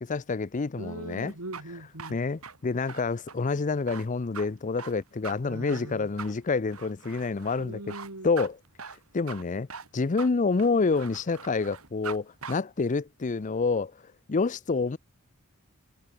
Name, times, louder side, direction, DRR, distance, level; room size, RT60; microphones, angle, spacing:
voice 1, 0.0-1.3 2.1-7.9 8.2-8.6 9.1-9.7 9.9-13.9 14.3-15.0, left 4 dB, 35° left, 0.5 m, -28 dB
voice 2, 0.8-2.2 5.4-6.1 7.6-8.3, right 2 dB, 90° right, 3.5 m, -40 dB
sound 1, 1.3-12.2 12.4-12.6, right 5 dB, 70° right, 3.5 m, -42 dB
head